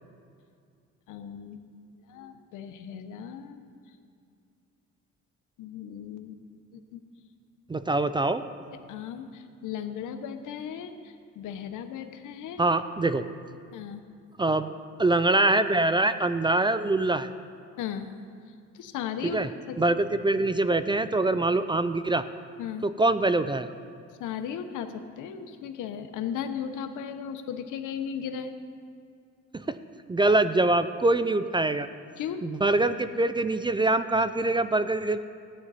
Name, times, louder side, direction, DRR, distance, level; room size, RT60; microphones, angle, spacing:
voice 1, 1.1-1.7 2.1-3.6 5.6-6.4 6.7-7.0 8.9-12.6 13.7-14.0 17.8-18.1 18.7-19.4 19.7-19.8 22.6-22.9 24.2-28.5 32.2-32.4, left 8 dB, 85° left, 8 dB, 0.9 m, -36 dB
voice 2, 7.7-8.4 12.6-13.2 14.4-14.7 15.0-17.3 19.2-19.5 19.8-22.3 22.8-23.7 29.5-29.8 30.1-31.9 32.4-35.2, right 2 dB, 15° right, 12 dB, 0.4 m, -24 dB
14.5 x 9.4 x 4.1 m, 2.3 s
cardioid pair, 90°, 30 cm